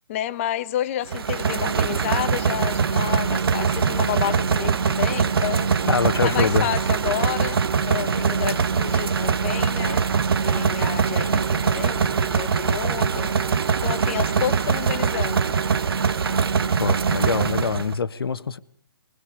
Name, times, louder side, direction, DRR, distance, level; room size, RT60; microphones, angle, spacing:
voice 1, 0.1-5.7 6.2-7.6 7.9-10.0 10.4-13.3 13.8-15.4, left 12 dB, 30° left, 1.2 m, -30 dB
sound 1, 1.1-18.0, right 6 dB, 70° right, 1.2 m, -22 dB
voice 2, 5.9-6.7 16.8-18.6, left 6 dB, 75° left, 1.5 m, -24 dB
27.5 x 22.5 x 5.2 m
hypercardioid pair, 150°, 13 cm